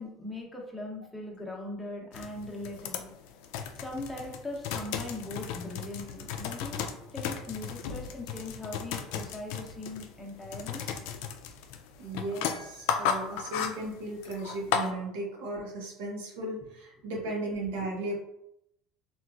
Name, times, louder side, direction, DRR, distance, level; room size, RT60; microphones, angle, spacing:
voice 1, 0.0-3.1 3.8-10.8, left 2 dB, 10° left, -1 dB, 0.7 m, -40 dB
sound 1, 2.1-14.9, left 7 dB, 75° left, 0.3 m, -35 dB
voice 2, 12.0-18.1, right 2 dB, 85° right, -1 dB, 0.8 m, -36 dB
3.0 x 2.3 x 2.4 m, 0.79 s
supercardioid pair, 100°, 0 cm